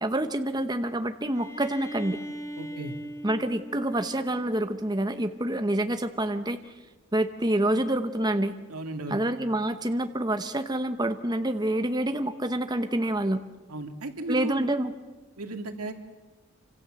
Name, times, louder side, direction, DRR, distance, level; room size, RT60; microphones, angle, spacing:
voice 1, 0.0-2.2 3.2-6.6 7.1-8.5 9.1-13.4 14.3-14.9, right 1 dB, 20° right, 8 dB, 1.0 m, -27 dB
Bowed string instrument, 1.3-5.1, right 1 dB, 15° left, 2.6 m, -40 dB
voice 2, 2.6-2.9 8.7-9.2 13.7-14.7 15.4-15.9, right 2 dB, 90° right, 5 dB, 2.5 m, -34 dB
28.0 x 26.0 x 7.7 m, 1.2 s
head